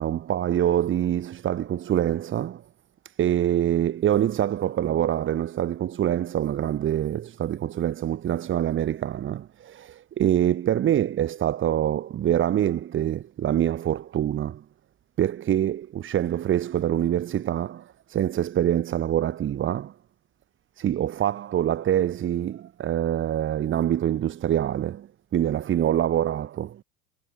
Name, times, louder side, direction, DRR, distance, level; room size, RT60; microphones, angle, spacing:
voice 1, 0.0-2.6 3.1-14.6 15.2-19.9 20.8-26.8, right 11 dB, 30° right, 1.8 m, -25 dB
supercardioid pair, 125°, 40 cm